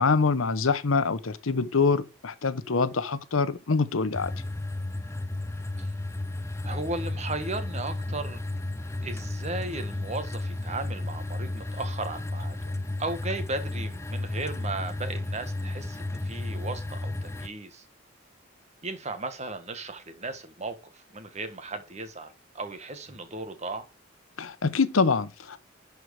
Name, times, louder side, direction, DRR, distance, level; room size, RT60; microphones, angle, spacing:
voice 1, 0.0-4.3 24.4-25.6, left 4 dB, 90° left, 0.9 m, -25 dB
sound 1, 4.1-17.5, left 2 dB, 15° left, 0.4 m, -33 dB
voice 2, 6.6-8.4 9.0-12.7 13.0-17.8 18.8-23.9, right 2 dB, 35° right, 1.5 m, -36 dB
11.5 x 4.6 x 4.8 m
head